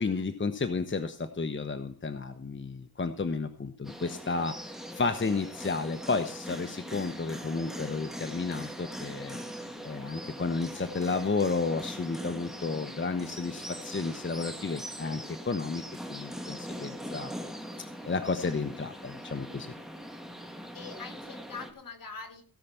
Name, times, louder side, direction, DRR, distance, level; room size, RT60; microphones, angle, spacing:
voice 1, 0.0-9.4 9.8-15.8 16.1-17.3 18.0-19.7, left 4 dB, 30° left, 8 dB, 1.0 m, -32 dB
sound 1, 3.8-21.7, equal, ahead, 2.1 m, -41 dB
voice 2, 20.7-22.4, left 4 dB, 65° left, 4 dB, 3.1 m, -44 dB
16.5 x 5.8 x 6.9 m, 0.42 s
wide cardioid pair, 85°, 36 cm